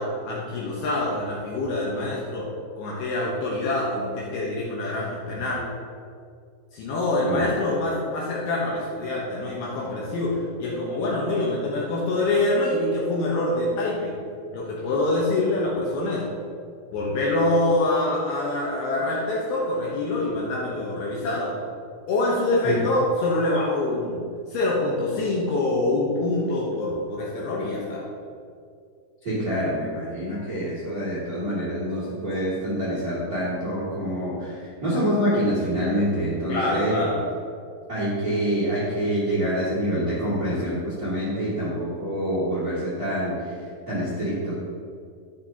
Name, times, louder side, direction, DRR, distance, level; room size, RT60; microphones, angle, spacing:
voice 1, 0.0-2.5 2.8-5.6 6.7-14.2 14.5-16.2 16.9-21.5 22.1-28.0 36.5-37.2, left 2 dB, 70° left, -4 dB, 2.6 m, -25 dB
voice 2, 29.2-36.9 37.9-43.5 43.9-44.5, equal, 30° right, -9 dB, 1.8 m, -26 dB
12.5 x 7.3 x 2.9 m, 2.2 s
omnidirectional pair, 5.4 m